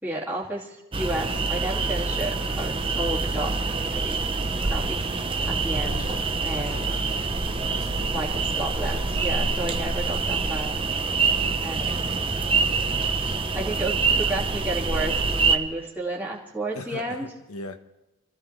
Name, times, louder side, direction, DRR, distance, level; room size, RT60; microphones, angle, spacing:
voice 1, 0.0-3.5 3.9-4.2 4.6-5.0 5.5-6.1 6.4-6.9 8.1-10.8 11.6-12.2 13.6-17.3, right 1 dB, 10° right, -7 dB, 2.3 m, -32 dB
sound 1, 0.9-15.6, right 4 dB, 25° right, 0.7 m, -26 dB
voice 2, 5.7-7.4 7.6-8.3 8.8-9.5 11.3-11.7 16.7-17.8, left 2 dB, 85° left, 8 dB, 1.2 m, -41 dB
27.5 x 15.5 x 3.3 m, 1.0 s
head